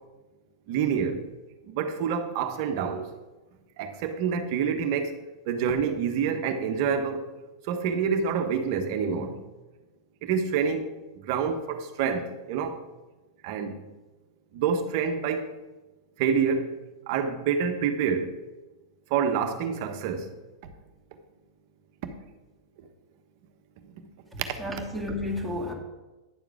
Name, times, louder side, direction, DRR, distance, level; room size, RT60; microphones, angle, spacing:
voice 1, 0.7-1.2 1.7-3.0 3.8-5.2 5.5-7.3 7.7-9.3 10.2-10.9 11.2-12.8 13.4-13.9 14.5-15.5 16.2-16.7 17.1-18.3 19.1-20.3 23.9-24.0, right 6 dB, 55° right, 7 dB, 1.2 m, -27 dB
voice 2, 24.3-25.7, left 1 dB, ahead, -4 dB, 2.3 m, -32 dB
10.5 x 7.1 x 4.9 m, 1.1 s
hypercardioid pair, 100°, 2 cm